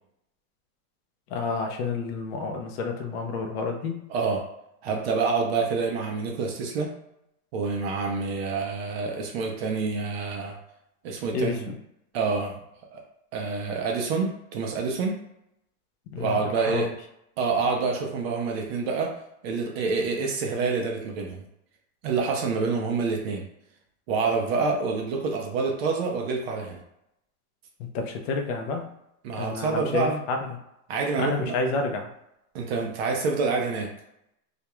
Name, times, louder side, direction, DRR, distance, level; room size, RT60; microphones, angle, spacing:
voice 1, 1.3-4.0 11.3-11.8 16.1-16.9 27.8-28.9 29.4-30.6 31.2-32.1, left 3 dB, 45° left, 3 dB, 0.4 m, -30 dB
voice 2, 4.8-6.9 7.5-10.5 11.0-11.5 12.1-12.6 12.9-13.0 13.3-15.2 16.2-16.9 17.4-19.1 19.4-21.4 22.0-23.5 24.1-26.8 29.2-30.2 30.9-31.5 32.5-33.9, right 4 dB, 45° right, 1 dB, 0.4 m, -27 dB
2.4 x 2.1 x 2.9 m, 0.81 s
supercardioid pair, 150°, 46 cm